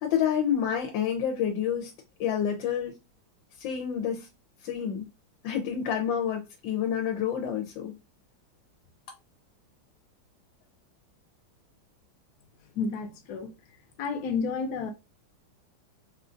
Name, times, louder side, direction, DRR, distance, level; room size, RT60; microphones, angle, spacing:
voice 1, 0.0-1.9 2.2-3.0 3.6-4.3 4.6-5.0 5.4-7.9, left 8 dB, 85° left, 1.4 m, -28 dB
voice 2, 12.7-13.5 14.0-14.9, left 5 dB, 65° left, 1.1 m, -31 dB
3.8 x 2.4 x 2.5 m
omnidirectional pair, 2.0 m